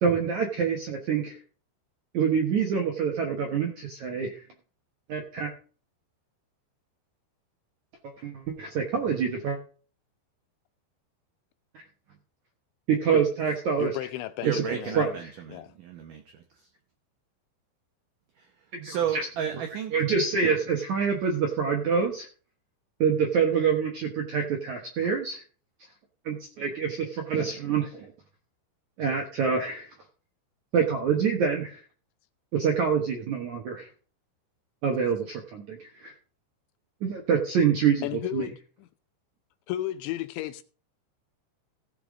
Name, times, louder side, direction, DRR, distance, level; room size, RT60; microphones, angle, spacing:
voice 1, 0.0-1.4 2.1-4.4 5.1-5.5 8.0-9.6 11.7-11.8 12.9-13.9 14.5-14.6 15.0-15.3 18.7-19.3 19.9-22.3 23.0-25.4 26.2-28.1 29.0-29.9 30.7-31.8 32.5-33.9 34.8-36.1 37.0-38.1 38.3-38.5, right 6 dB, 70° right, 1.8 m, -26 dB
voice 2, 13.8-15.2 15.5-15.7 38.0-38.6 39.7-40.6, left 14 dB, 80° left, 3.0 m, -33 dB
voice 3, 14.4-16.4 18.4-18.5 18.8-19.9, right 9 dB, 90° right, 1.8 m, -33 dB
16.0 x 5.8 x 5.0 m
omnidirectional pair, 5.3 m